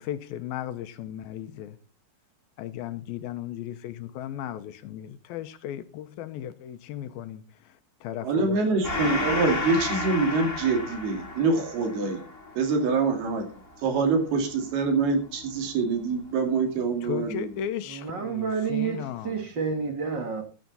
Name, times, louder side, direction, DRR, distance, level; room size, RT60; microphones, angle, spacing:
voice 1, 0.0-1.8 2.6-8.6 17.0-19.3, left 10 dB, 80° left, 2.5 m, -36 dB
voice 2, 8.2-12.2 12.6-13.5 13.8-17.5, right 4 dB, 75° right, 4.4 m, -25 dB
Gong, 8.8-15.8, left 2 dB, 55° left, 0.6 m, -33 dB
voice 3, 17.9-19.0 19.3-20.4, right 6 dB, 45° right, 1.6 m, -29 dB
14.5 x 10.5 x 4.1 m
omnidirectional pair, 4.6 m